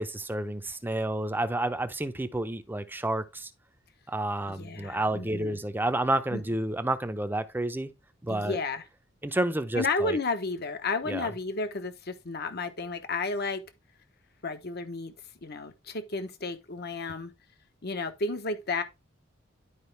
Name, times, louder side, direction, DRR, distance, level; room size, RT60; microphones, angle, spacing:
voice 1, 0.0-3.5 4.1-7.9 8.2-8.6 9.2-10.2 11.1-11.3, right 1 dB, 10° right, 0.7 m, -30 dB
voice 2, 4.5-5.6 6.3-6.4 8.3-8.8 9.7-13.6 14.4-15.1 15.4-17.3 17.8-18.8, left 3 dB, 55° left, 1.0 m, -32 dB
11.5 x 4.9 x 3.3 m
head